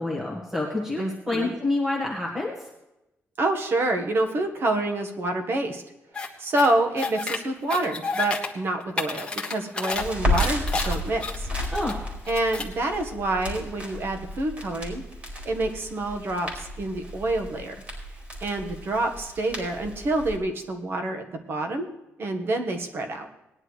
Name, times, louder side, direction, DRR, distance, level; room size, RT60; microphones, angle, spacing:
voice 1, 0.0-2.5 11.7-12.0, left 2 dB, 10° right, -3 dB, 1.7 m, -27 dB
voice 2, 1.0-1.5 3.4-5.8 6.4-11.5 12.3-15.0 15.4-17.7 18.4-21.9 22.2-23.3, right 2 dB, 50° right, 4 dB, 1.4 m, -27 dB
sound 1, 6.1-6.3 6.6-7.4 7.7-8.5 8.8-10.0 10.3-11.9 12.2-12.7, left 4 dB, 20° left, 1.3 m, -30 dB
Crackle, 9.9-20.4, left 1 dB, 30° right, 4.5 m, -33 dB
19.5 x 10.5 x 3.2 m, 0.91 s
wide cardioid pair, 160°, 5 cm